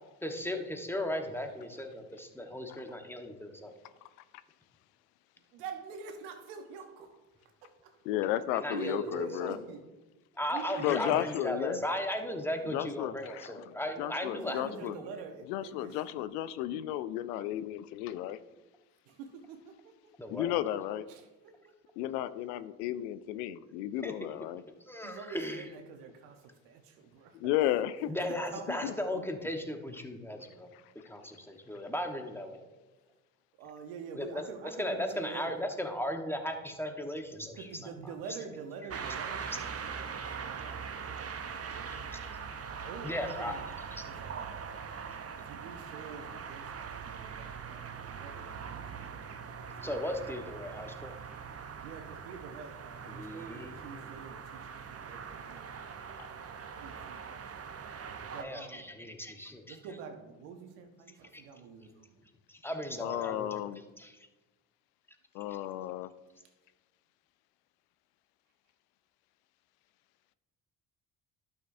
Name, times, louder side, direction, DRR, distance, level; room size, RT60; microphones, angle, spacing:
voice 1, 0.2-3.7 8.5-9.6 10.4-14.8 20.2-20.5 24.0-24.1 24.9-25.7 28.1-30.7 30.9-32.7 34.1-34.3 34.8-37.7 39.4-39.6 41.2-41.3 42.1-42.2 43.0-43.6 43.9-44.1 49.8-51.1 53.1-54.0 58.4-59.8 61.3-61.4 62.5-64.3 65.5-65.6, left 1 dB, 5° left, 5 dB, 1.2 m, -37 dB
voice 2, 5.5-8.0 8.7-9.8 10.5-11.3 14.3-16.0 19.0-20.1 21.1-21.9 22.2-22.3 25.0-27.8 28.3-29.2 33.6-35.7 37.5-42.2 42.6-43.7 44.1-44.7 45.4-49.3 49.6-50.3 51.8-56.3 56.7-57.7 58.3-58.9 59.7-62.2, right 5 dB, 75° right, 6 dB, 1.1 m, -46 dB
voice 3, 8.1-9.6 10.8-11.8 12.7-13.6 14.0-14.9 15.5-18.4 20.3-21.1 22.0-24.6 27.4-28.1 28.7-28.9 63.0-63.8 65.3-66.1, left 13 dB, 80° left, 14 dB, 0.5 m, -33 dB
sound 1, 38.9-58.4, right 6 dB, 30° right, 0.8 m, -42 dB
12.0 x 6.4 x 2.6 m, 1.1 s
hypercardioid pair, 50°, 47 cm